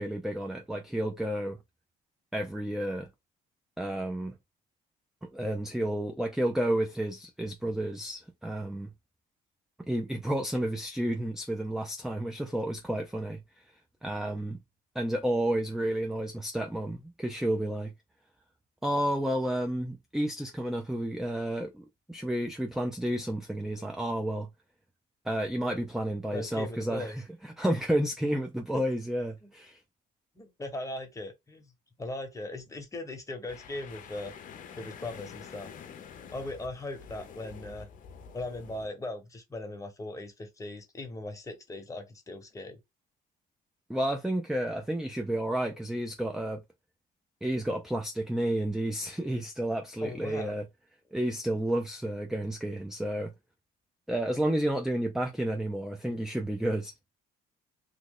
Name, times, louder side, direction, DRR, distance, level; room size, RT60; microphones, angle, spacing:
voice 1, 0.0-1.6 2.3-3.1 3.8-4.4 5.2-8.9 9.8-13.4 14.0-14.6 14.9-17.9 18.8-24.5 25.3-29.8 43.9-46.6 47.4-50.7 51.1-53.3 54.1-56.9, right 1 dB, 5° right, 0.4 m, -31 dB
voice 2, 26.3-27.2 28.7-28.8 29.4-29.5 30.3-31.7 32.0-34.3 34.8-35.7 36.3-37.9 38.3-42.8 50.0-50.6, left 2 dB, 20° left, 1.2 m, -39 dB
sound 1, 33.5-38.9, left 7 dB, 50° left, 0.7 m, -47 dB
3.1 x 2.3 x 3.7 m
cardioid pair, 110°, 17 cm